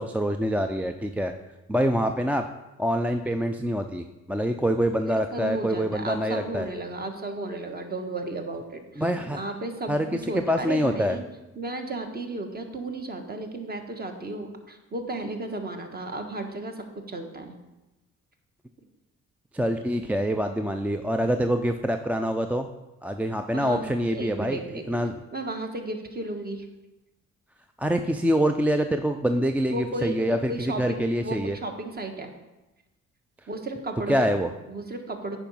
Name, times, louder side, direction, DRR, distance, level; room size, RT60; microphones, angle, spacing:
voice 1, 0.0-1.3 1.7-2.4 2.8-6.7 9.0-9.4 9.9-10.1 10.3-11.2 19.5-22.7 23.0-24.6 24.9-25.2 27.8-31.6 34.1-34.5, equal, 5° right, 6 dB, 0.4 m, -25 dB
voice 2, 5.3-9.0 9.3-11.2 11.6-17.6 23.5-23.9 24.1-25.0 25.3-26.7 29.7-32.3 33.5-34.3 34.7-35.4, right 2 dB, 30° right, 5 dB, 1.4 m, -34 dB
8.9 x 5.0 x 5.4 m, 1.0 s
cardioid pair, 90°, 30 cm